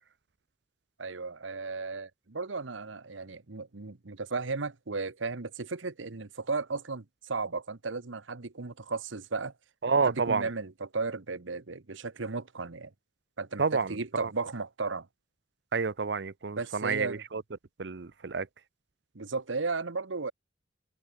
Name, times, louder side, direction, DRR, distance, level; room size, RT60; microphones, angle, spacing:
voice 1, 1.0-9.5 10.0-12.9 13.4-15.1 16.6-17.2 19.1-20.3, right 4 dB, 80° right, 1.1 m, -35 dB
voice 2, 9.8-10.5 13.6-13.9 14.2-14.3 15.7-17.4 17.8-18.5, right 4 dB, 60° right, 0.7 m, -29 dB
head